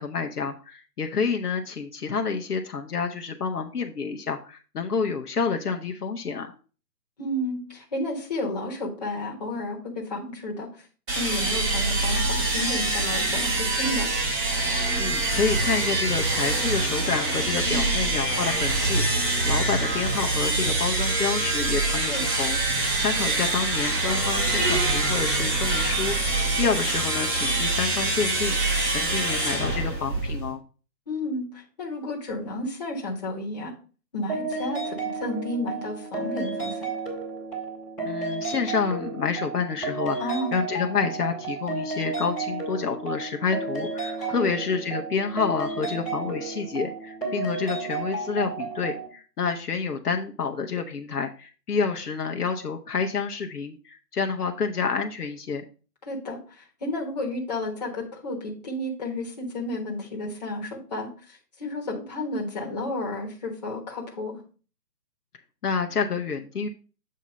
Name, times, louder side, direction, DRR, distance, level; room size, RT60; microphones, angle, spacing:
voice 1, 0.0-6.5 15.0-30.6 38.0-55.6 65.6-66.7, left 5 dB, 65° left, 4 dB, 0.8 m, -29 dB
voice 2, 7.2-10.7 11.1-14.1 17.7-17.9 21.9-22.2 31.1-33.7 34.1-36.9 40.2-40.6 44.2-44.5 56.0-64.4, left 1 dB, 25° left, -2 dB, 1.2 m, -32 dB
sound 1, 11.1-30.5, right 2 dB, 30° right, 2.7 m, -25 dB
sound 2, 34.3-49.1, right 4 dB, 5° left, 1.3 m, -32 dB
7.4 x 2.8 x 5.4 m, 0.37 s
hypercardioid pair, 165°, 49 cm